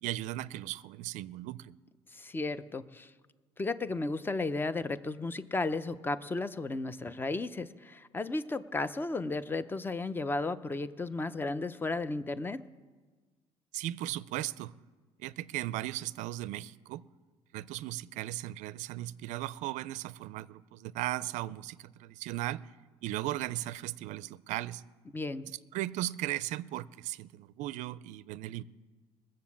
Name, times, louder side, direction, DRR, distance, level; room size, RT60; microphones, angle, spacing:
voice 1, 0.0-1.8 13.7-14.7 15.2-17.0 17.5-22.6 23.0-24.8 25.7-28.6, right 15 dB, 75° right, 0.4 m, -37 dB
voice 2, 2.1-3.1 3.6-12.6 25.1-25.5, left 3 dB, 15° left, 0.6 m, -34 dB
20.0 x 7.6 x 7.2 m
cardioid pair, 100°, 13 cm